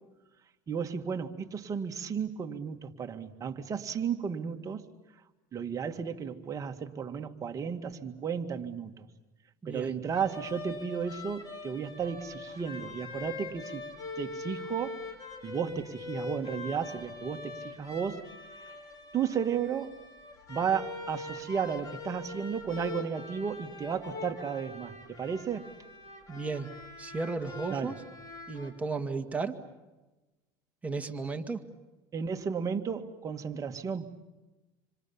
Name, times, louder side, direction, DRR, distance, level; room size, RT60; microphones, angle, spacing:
voice 1, 0.7-4.8 5.5-9.1 9.7-13.8 14.2-15.0 15.4-18.2 18.6-18.8 19.1-19.9 20.5-25.7 27.7-27.9 32.1-34.1, right 7 dB, 30° right, 5 dB, 2.0 m, -33 dB
voice 2, 9.6-9.9 26.3-26.7 27.0-27.9 28.5-29.6 30.8-31.6, right 4 dB, 10° right, 3 dB, 2.1 m, -34 dB
sound 1, 10.1-28.7, left 3 dB, 30° left, 4.8 m, -43 dB
27.0 x 26.0 x 7.2 m, 1.1 s
supercardioid pair, 120°, 12 cm